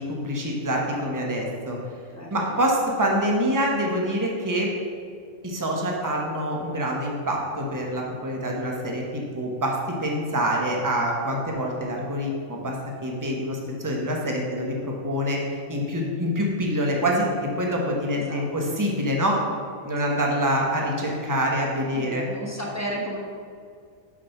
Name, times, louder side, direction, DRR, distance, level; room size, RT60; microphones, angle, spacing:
voice 1, 0.0-1.8 2.3-4.7 5.4-12.8 13.0-19.4 19.8-22.3, equal, 15° right, -1 dB, 1.0 m, -26 dB
voice 2, 2.1-2.6 18.3-18.7 20.1-20.2 21.9-23.2, equal, 15° left, -2 dB, 1.0 m, -34 dB
6.3 x 5.7 x 5.8 m, 2.3 s
omnidirectional pair, 1.5 m